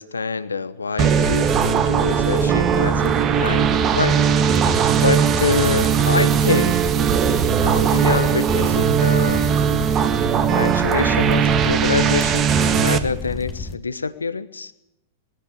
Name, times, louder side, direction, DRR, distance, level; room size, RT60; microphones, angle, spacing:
voice 1, 0.0-4.1 5.0-6.8 7.6-9.5 10.5-14.7, left 4 dB, 80° left, 14 dB, 1.1 m, -25 dB
sound 1, 1.0-13.8, left 4 dB, 20° left, 1.5 m, -32 dB
sound 2, 1.0-13.0, right 7 dB, 30° right, 1.8 m, -19 dB
20.5 x 15.0 x 8.6 m, 0.88 s
figure-of-eight pair, 95°, 0 cm